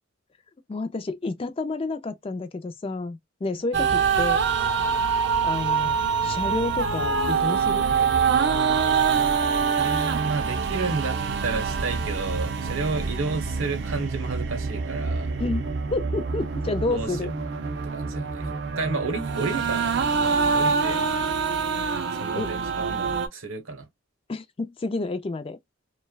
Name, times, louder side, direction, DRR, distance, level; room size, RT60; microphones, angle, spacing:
voice 1, 0.7-4.4 5.4-7.9 15.4-15.6 15.9-17.3 22.3-22.5 24.3-25.6, left 2 dB, 25° left, 0.3 m, -30 dB
voice 2, 3.5-3.9 9.8-15.3 16.9-17.2 17.5-17.7 17.9-19.9 20.2-21.0 22.2-23.9, right 3 dB, 85° right, 0.9 m, -31 dB
sound 1, 3.7-23.3, right 5 dB, 60° right, 0.5 m, -25 dB
3.1 x 2.2 x 2.2 m
head